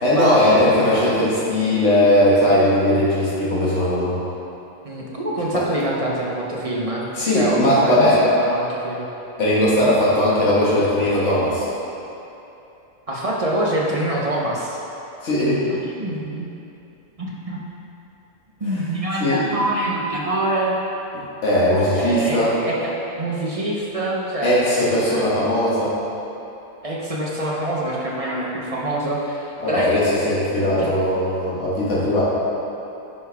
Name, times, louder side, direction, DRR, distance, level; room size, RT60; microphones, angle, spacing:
voice 1, 0.0-4.2 5.5-5.6 7.1-8.2 9.4-11.7 15.2-15.7 19.2-19.4 21.4-22.5 24.4-25.9 29.6-32.2, left 1 dB, 55° left, -7 dB, 1.9 m, -18 dB
voice 2, 4.8-9.1 13.1-14.8 15.9-16.5 17.2-17.6 18.6-20.8 22.0-24.5 25.0-25.4 26.8-30.0 30.6-30.9, right 1 dB, 30° right, -4 dB, 0.8 m, -25 dB
9.7 x 5.4 x 3.5 m, 2.9 s
omnidirectional pair, 1.5 m